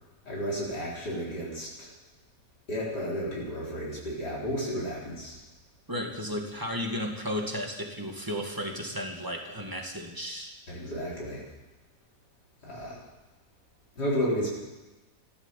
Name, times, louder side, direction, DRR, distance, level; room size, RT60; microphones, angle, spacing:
voice 1, 0.2-1.9 2.7-5.4 10.7-11.4 12.6-13.0 14.0-14.5, equal, 70° left, -6 dB, 4.7 m, -32 dB
voice 2, 5.9-10.5, equal, 10° right, 2 dB, 2.0 m, -34 dB
15.5 x 12.0 x 7.3 m, 1.1 s
omnidirectional pair, 1.8 m